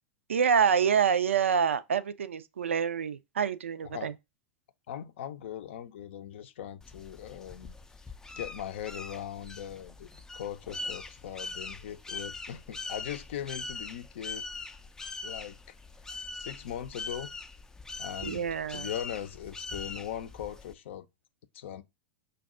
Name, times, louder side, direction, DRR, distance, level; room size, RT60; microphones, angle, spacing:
voice 1, 0.3-4.1 18.2-18.9, right 7 dB, 85° right, 0.4 m, -27 dB
voice 2, 4.9-7.7 8.4-14.5 15.2-15.8 16.4-17.3 18.0-18.4 18.7-21.1 21.5-21.8, left 10 dB, 70° left, 0.5 m, -40 dB
sound 1, 6.8-20.7, left 3 dB, 10° left, 0.3 m, -42 dB
5.1 x 2.3 x 3.6 m
hypercardioid pair, 100°, 7 cm